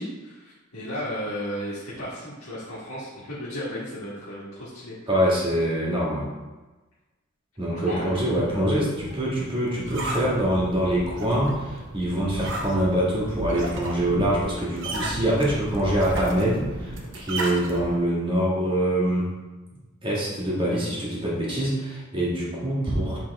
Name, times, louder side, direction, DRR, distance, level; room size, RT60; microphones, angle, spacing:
voice 1, 0.0-4.9 7.7-8.1, equal, 80° left, -10 dB, 1.6 m, -34 dB
voice 2, 5.1-6.3 7.6-19.3 20.0-23.2, right 1 dB, 25° right, -6 dB, 1.7 m, -24 dB
sound 1, 7.9-18.0, right 1 dB, 60° right, 0.8 m, -34 dB
7.3 x 3.6 x 3.5 m, 1.2 s
head